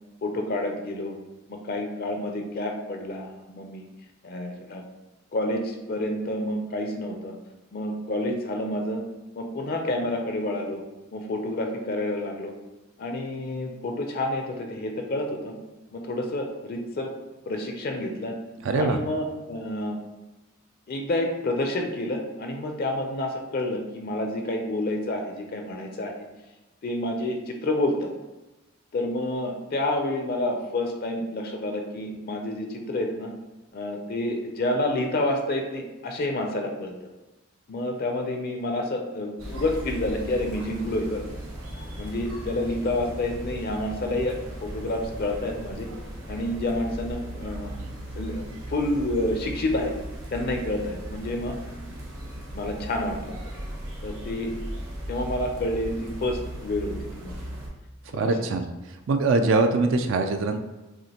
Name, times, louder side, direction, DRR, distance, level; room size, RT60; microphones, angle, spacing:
voice 1, 0.2-1.2 1.5-3.9 4.2-4.8 5.3-7.3 7.7-9.0 9.3-10.8 11.1-12.5 13.0-15.5 15.9-17.1 17.5-18.4 18.7-20.0 20.9-26.1 26.8-28.1 28.9-33.3 33.7-36.9 37.7-41.2 42.0-44.4 44.6-45.9 46.3-47.7 48.2-49.9 50.3-51.6 52.5-53.4 54.0-54.5 55.1-57.4 58.1-58.6, left 1 dB, 45° left, 3 dB, 0.5 m, -29 dB
voice 2, 18.6-19.0 58.1-58.7 59.1-60.6, right 3 dB, 60° right, 6 dB, 0.3 m, -22 dB
sound 1, 39.4-57.7, equal, 85° right, 1.1 m, -37 dB
6.1 x 2.5 x 2.8 m, 1.1 s
head